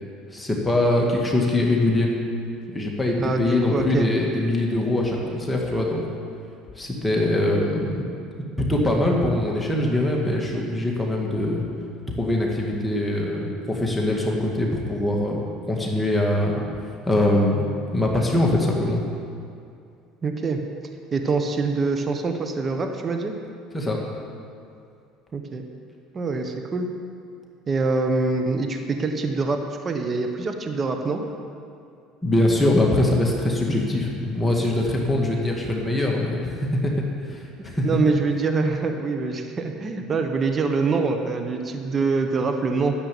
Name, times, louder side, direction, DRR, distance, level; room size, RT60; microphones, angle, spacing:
voice 1, 0.3-2.1 2.7-6.0 6.8-8.0 8.6-11.6 12.2-16.7 17.1-17.7 17.9-19.0 23.7-24.0 32.2-36.9 37.2-37.9, left 1 dB, 15° left, -1 dB, 1.9 m, -23 dB
voice 2, 3.2-4.1 20.2-20.6 21.1-23.3 25.3-25.6 26.1-26.9 27.7-31.2 37.8-42.9, right 4 dB, 35° right, 5 dB, 1.2 m, -25 dB
10.5 x 7.7 x 8.5 m, 2.4 s
supercardioid pair, 85°, 0 cm